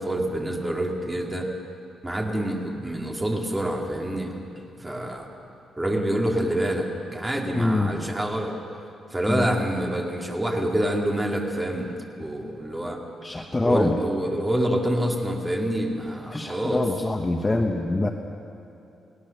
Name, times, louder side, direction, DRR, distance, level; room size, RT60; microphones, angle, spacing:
voice 1, 0.0-1.5 2.0-4.3 4.8-5.3 5.8-8.5 9.1-11.9 12.2-13.0 13.6-16.8, right 1 dB, 10° right, 0 dB, 2.7 m, -26 dB
voice 2, 7.5-7.9 9.3-9.5 13.2-14.0 16.3-18.1, left 2 dB, 15° left, 3 dB, 1.1 m, -24 dB
29.5 x 18.5 x 6.7 m, 2.9 s
cardioid pair, 155°, 0 cm